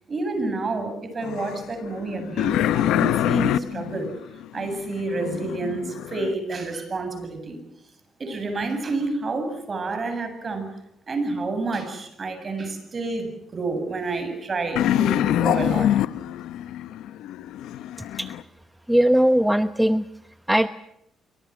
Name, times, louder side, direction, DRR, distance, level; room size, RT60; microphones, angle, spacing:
voice 1, 0.1-4.1 4.5-7.6 8.2-10.7 11.1-15.9, right 3 dB, 40° right, 8 dB, 7.8 m, -29 dB
sound 1, 1.2-6.3 14.8-18.4, left 12 dB, 85° left, 0.8 m, -25 dB
voice 2, 18.9-20.0 20.5-20.7, equal, 5° right, 12 dB, 0.9 m, -19 dB
27.0 x 25.0 x 6.2 m, 0.81 s
cardioid pair, 90°, 0 cm